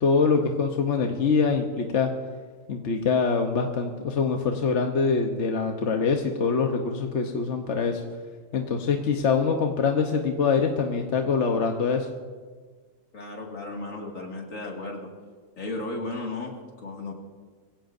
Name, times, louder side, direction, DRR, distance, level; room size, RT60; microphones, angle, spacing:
voice 1, 0.0-2.1 2.7-8.0 8.5-12.1, left 5 dB, 60° left, 3 dB, 1.2 m, -24 dB
voice 2, 13.1-15.1 15.6-17.1, left 2 dB, 75° left, 0 dB, 2.6 m, -35 dB
23.0 x 16.5 x 2.6 m, 1.5 s
omnidirectional pair, 1.4 m